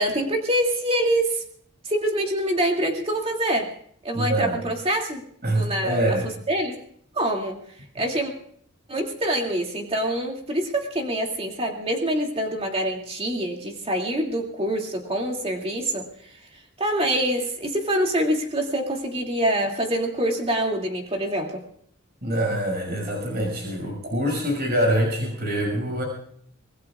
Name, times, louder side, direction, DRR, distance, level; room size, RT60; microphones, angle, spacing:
voice 1, 0.0-1.4 1.8-3.7 4.0-5.2 5.5-6.8 7.1-7.6 7.9-8.3 8.9-16.1 16.8-21.6, right 1 dB, 30° right, 1 dB, 2.5 m, -25 dB
voice 2, 4.1-4.6 5.4-6.3 22.2-26.0, right 1 dB, 50° right, 2 dB, 5.9 m, -25 dB
25.5 x 20.0 x 2.4 m, 0.64 s
head